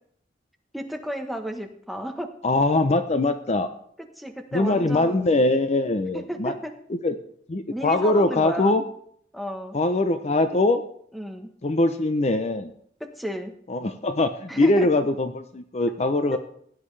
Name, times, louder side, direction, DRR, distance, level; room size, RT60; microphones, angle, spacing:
voice 1, 0.7-2.3 4.2-5.3 6.1-6.7 7.7-8.8 9.3-9.8 11.1-11.5 13.0-13.5 14.5-14.9 16.3-16.4, equal, ahead, 5 dB, 1.0 m, -33 dB
voice 2, 2.4-3.7 4.5-6.5 6.9-7.2 7.5-8.8 9.7-10.8 11.6-12.7 13.7-16.4, left 2 dB, 35° left, 9 dB, 0.6 m, -22 dB
16.5 x 10.5 x 3.3 m, 0.65 s
head